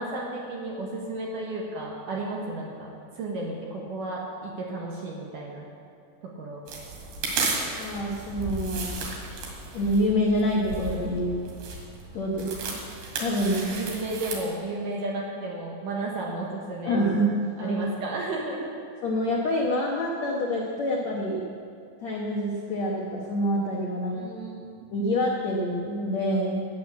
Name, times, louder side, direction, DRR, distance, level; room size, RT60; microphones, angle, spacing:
voice 1, 0.0-5.7 6.2-6.6 13.6-17.0 17.6-18.7 24.1-24.9, right 2 dB, 60° right, -2 dB, 2.6 m, -33 dB
sound 1, 6.7-14.4, right 3 dB, 85° right, 4.3 m, -34 dB
voice 2, 7.7-8.9 9.7-11.3 12.1-12.8 13.2-13.6 16.8-17.8 19.0-21.5 22.0-24.3 24.9-26.6, equal, 70° left, -1 dB, 1.7 m, -26 dB
12.5 x 9.4 x 7.2 m, 2.4 s
omnidirectional pair, 4.8 m